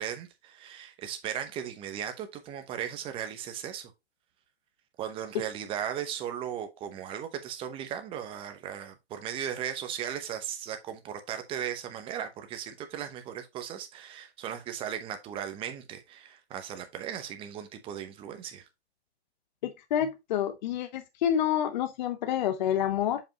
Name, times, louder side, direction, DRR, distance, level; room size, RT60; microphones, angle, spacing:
voice 1, 0.0-3.9 5.0-18.7, right 9 dB, 15° right, 0.8 m, -37 dB
voice 2, 19.6-23.2, left 10 dB, 45° left, 0.8 m, -28 dB
7.0 x 5.3 x 2.8 m
hypercardioid pair, 140°, 33 cm